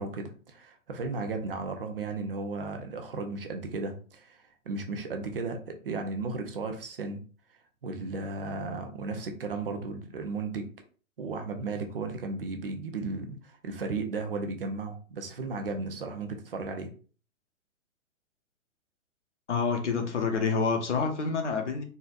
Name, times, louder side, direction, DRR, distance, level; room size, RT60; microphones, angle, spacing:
voice 1, 0.0-7.2 7.8-10.7 11.2-16.9, right 3 dB, 40° right, 5 dB, 0.8 m, -35 dB
voice 2, 19.5-21.8, left 5 dB, 55° left, 5 dB, 1.1 m, -28 dB
4.3 x 4.0 x 2.5 m, 0.39 s
figure-of-eight pair, 130°, 42 cm